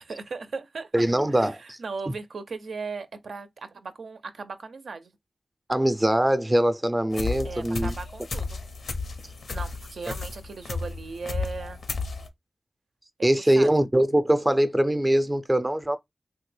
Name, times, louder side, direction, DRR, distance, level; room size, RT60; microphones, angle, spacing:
voice 1, 0.1-5.1 7.4-8.6 9.5-11.8 13.2-13.7, right 4 dB, 80° right, 0.4 m, -37 dB
voice 2, 0.9-1.8 2.1-2.2 5.7-7.9 13.2-16.0, right 1 dB, 15° right, 0.4 m, -22 dB
sound 1, 7.1-12.3, left 4 dB, 80° left, 0.5 m, -33 dB
3.2 x 2.1 x 3.2 m
cardioid pair, 60°, 0 cm